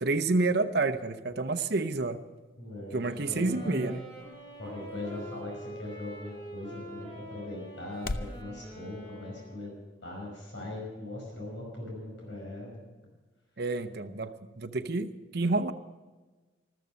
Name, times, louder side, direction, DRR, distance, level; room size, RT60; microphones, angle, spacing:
voice 1, 0.0-2.2 2.9-4.0 13.6-15.7, right 3 dB, 55° right, 9 dB, 0.8 m, -29 dB
sound 1, 2.1-8.4, left 2 dB, 50° left, 0.6 m, -45 dB
voice 2, 2.6-3.0 3.3-4.0 4.6-9.7 10.0-12.8, left 1 dB, 75° left, -1 dB, 5.4 m, -40 dB
sound 2, 2.9-9.8, right 1 dB, 30° left, 7.0 m, -46 dB
14.0 x 13.5 x 6.4 m, 1.2 s
head